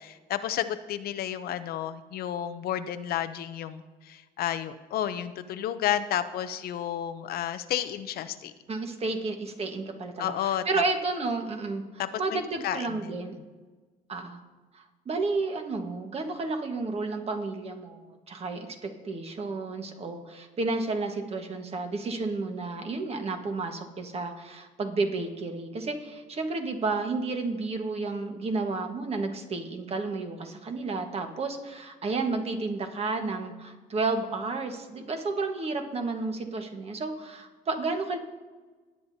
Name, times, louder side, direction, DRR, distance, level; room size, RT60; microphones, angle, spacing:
voice 1, 0.0-8.5 10.2-10.6 12.0-13.0, left 11 dB, 65° left, 11 dB, 0.6 m, -31 dB
voice 2, 8.7-13.4 14.1-14.4 14.7-38.2, right 3 dB, 35° right, 5 dB, 1.4 m, -31 dB
18.5 x 8.4 x 2.7 m, 1.3 s
cardioid pair, 110°, 17 cm